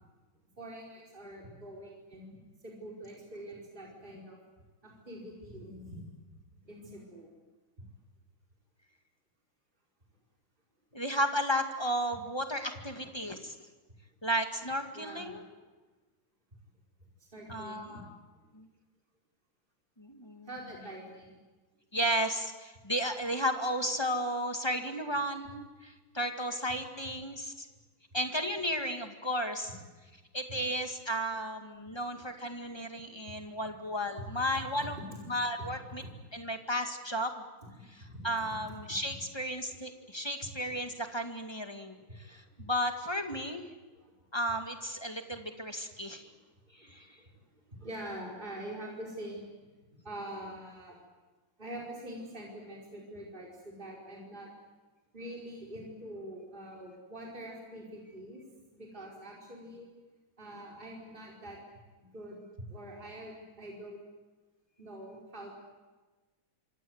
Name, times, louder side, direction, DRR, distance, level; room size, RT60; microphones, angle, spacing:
voice 1, 0.6-2.4 2.6-4.4 4.8-6.0 6.6-7.3 12.7-12.8 14.9-15.6 17.3-18.0 20.5-21.3 30.5-30.6 33.1-33.7 34.2-34.3 35.1-35.2 35.6-36.1 38.0-38.6 40.7-40.8 41.9-42.7 43.9-44.1 46.2-46.3 46.8-47.3 47.7-49.5 50.0-51.0 51.6-54.5 55.1-58.4 58.7-59.9 60.4-61.6 62.0-62.4 62.7-64.0 64.8-65.6, right 1 dB, 20° right, -2 dB, 5.1 m, -45 dB
voice 2, 10.9-13.5 14.2-15.4 17.5-18.2 18.5-18.7 20.0-20.5 21.9-27.7 28.1-29.7 30.3-35.0 35.3-36.0 36.3-37.3 38.2-43.7 44.3-46.3 46.9-47.1, equal, 15° left, 5 dB, 1.9 m, -33 dB
26.5 x 25.5 x 8.1 m, 1.3 s
omnidirectional pair, 2.3 m